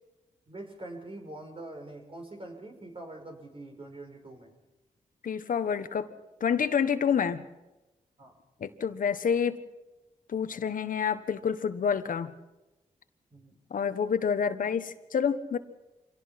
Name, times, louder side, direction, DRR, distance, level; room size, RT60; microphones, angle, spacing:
voice 1, 0.5-4.5 8.2-8.3 13.3-13.6, right 2 dB, 40° right, 4 dB, 5.6 m, -44 dB
voice 2, 5.2-6.1 6.4-7.4 8.6-9.6 10.3-12.3 13.7-15.6, left 7 dB, 75° left, 10 dB, 1.3 m, -28 dB
25.5 x 18.0 x 5.9 m, 1.0 s
cardioid pair, 80°, 14 cm